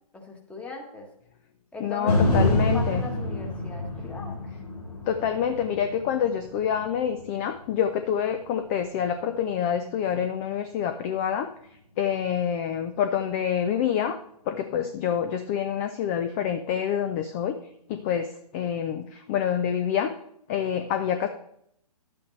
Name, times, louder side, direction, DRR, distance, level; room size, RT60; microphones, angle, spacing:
voice 1, 0.1-1.1 1.7-4.4, left 3 dB, 5° left, 2 dB, 1.4 m, -38 dB
voice 2, 1.8-3.0 5.1-11.5 12.0-14.2 14.5-17.6 17.9-20.1 20.5-21.3, left 8 dB, 20° left, 8 dB, 0.4 m, -27 dB
sound 1, 2.1-10.2 10.7-10.8, left 1 dB, 80° left, 3.1 m, -29 dB
11.0 x 8.5 x 3.2 m, 0.71 s
figure-of-eight pair, 130°, 20 cm